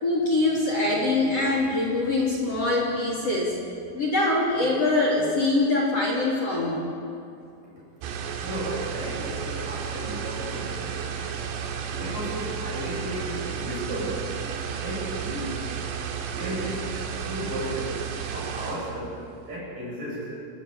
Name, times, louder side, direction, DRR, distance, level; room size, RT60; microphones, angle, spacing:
voice 1, 0.0-3.5 3.9-6.8, left 2 dB, 35° left, -2 dB, 3.6 m, -23 dB
sound 1, 8.0-19.0, right 7 dB, 80° right, 4.6 m, -33 dB
voice 2, 8.4-11.0 11.9-14.2 14.8-15.7 16.2-17.9 18.3-19.1 19.5-20.3, right 1 dB, 40° right, -5 dB, 9.5 m, -34 dB
29.5 x 17.5 x 8.7 m, 2.6 s
omnidirectional pair, 5.9 m